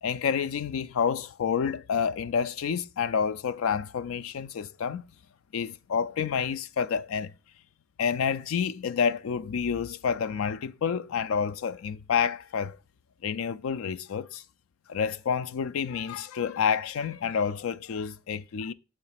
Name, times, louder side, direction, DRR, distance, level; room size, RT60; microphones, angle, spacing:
voice 1, 0.0-5.0 5.5-7.3 8.0-12.8 13.2-14.4 14.9-18.7, left 7 dB, 85° left, 0.4 m, -29 dB
7.0 x 3.2 x 5.7 m
head